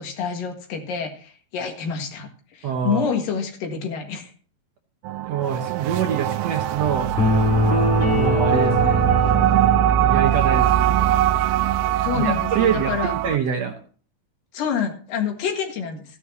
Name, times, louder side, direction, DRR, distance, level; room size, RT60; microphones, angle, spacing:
voice 1, 0.0-4.3 12.0-13.1 14.5-16.0, left 7 dB, 80° left, 4 dB, 3.4 m, -27 dB
voice 2, 2.6-3.1 5.3-7.1 8.1-9.1 10.0-11.0 12.1-12.9 13.2-13.7, right 7 dB, 65° right, 4 dB, 1.7 m, -25 dB
sound 1, 5.0-13.4, right 11 dB, 85° right, 2.3 m, -21 dB
sound 2, 7.2-10.7, left 2 dB, 55° left, 2.8 m, -22 dB
14.0 x 11.0 x 2.8 m, 0.43 s
omnidirectional pair, 4.0 m